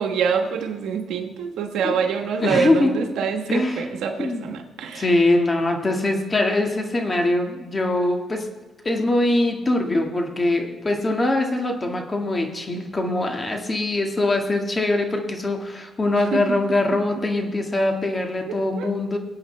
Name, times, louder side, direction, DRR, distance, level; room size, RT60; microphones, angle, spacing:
voice 1, 0.0-5.0 16.3-16.6 18.5-18.9, right 6 dB, 80° right, 4 dB, 1.3 m, -25 dB
voice 2, 2.4-3.0 3.5-3.9 4.2-4.5 4.9-8.5 8.8-19.2, left 2 dB, 25° left, 3 dB, 1.8 m, -22 dB
23.0 x 8.6 x 3.3 m, 1.2 s
cardioid pair, 90°, 0 cm